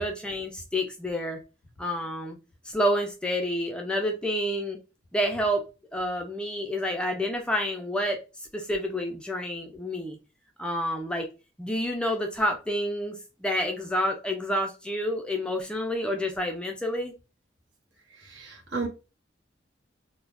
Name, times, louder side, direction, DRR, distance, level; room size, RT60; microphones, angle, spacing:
voice 1, 0.0-1.4 1.8-2.4 2.7-4.8 5.1-5.6 5.9-8.2 8.5-10.2 10.6-11.3 11.6-17.1, equal, 5° left, 2 dB, 0.3 m, -29 dB
voice 2, 18.2-18.9, right 4 dB, 65° right, -1 dB, 1.0 m, -33 dB
2.3 x 2.0 x 3.2 m, 0.31 s
head